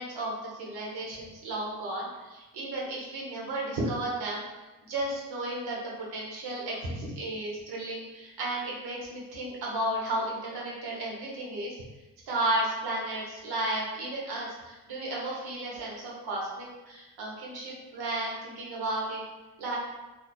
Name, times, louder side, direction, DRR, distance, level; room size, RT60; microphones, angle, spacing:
voice 1, 0.0-4.5 4.8-11.8 12.3-19.2 19.6-19.8, right 1 dB, 65° right, -4 dB, 1.0 m, -33 dB
2.7 x 2.2 x 2.2 m, 1.1 s
hypercardioid pair, 50°, 42 cm